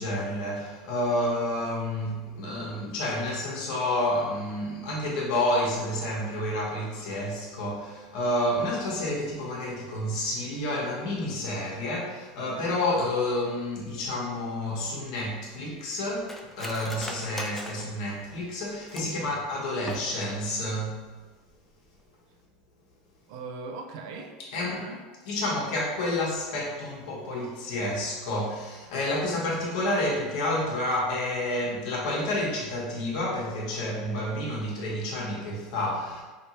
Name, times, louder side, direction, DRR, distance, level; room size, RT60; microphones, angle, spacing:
voice 1, 0.0-21.1 24.5-24.7 25.3-36.2, left 1 dB, 75° left, -3 dB, 1.0 m, -29 dB
Cutlery silverware, 14.8-19.3 19.7-20.4 20.8-20.9 21.2-21.5 21.9-22.1, left 1 dB, 5° left, 0.4 m, -41 dB
voice 2, 19.0-19.4 23.3-25.0, right 4 dB, 70° right, 4 dB, 0.5 m, -40 dB
3.0 x 2.8 x 2.9 m, 1.3 s
supercardioid pair, 120°, 4 cm